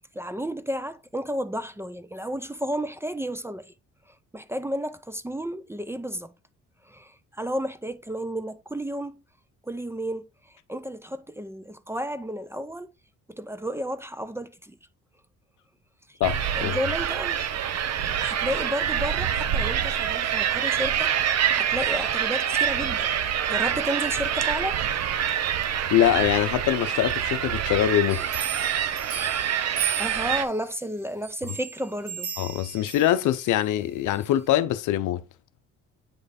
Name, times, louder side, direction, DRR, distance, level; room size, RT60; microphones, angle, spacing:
voice 1, 0.1-3.7 4.3-6.3 6.8-9.2 9.6-10.3 10.7-12.9 13.3-14.8 16.1-16.2 16.6-17.4 18.2-23.1 23.5-24.8 30.0-32.3, equal, 10° right, 0.5 m, -32 dB
voice 2, 16.2-16.8 25.9-28.3 32.4-35.2, left 12 dB, 80° left, 0.6 m, -23 dB
sound 1, 16.2-30.5, right 9 dB, 60° right, 0.7 m, -26 dB
sound 2, 28.1-30.7 31.2-33.6 34.1-34.2, right 8 dB, 85° right, 2.8 m, -35 dB
8.7 x 3.2 x 4.2 m
cardioid pair, 90°, 30 cm